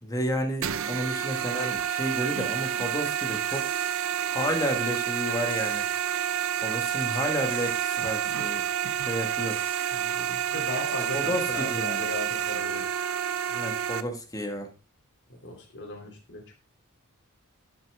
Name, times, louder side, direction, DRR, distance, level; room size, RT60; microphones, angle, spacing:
voice 1, 0.0-3.7 4.2-5.8 6.6-8.6 9.0-9.6 11.1-12.0 13.5-14.7, equal, 15° left, 4 dB, 1.6 m, -31 dB
sound 1, 0.6-14.0, right 9 dB, 65° right, 0.6 m, -29 dB
sound 2, 3.5-4.1 5.5-6.1 6.9-7.2 7.5-8.1 9.5-10.1 10.9-11.2, right 7 dB, 40° right, 1.5 m, -46 dB
voice 2, 9.9-12.8 15.3-16.5, left 1 dB, 55° left, 1 dB, 2.9 m, -37 dB
11.5 x 6.5 x 3.6 m, 0.31 s
head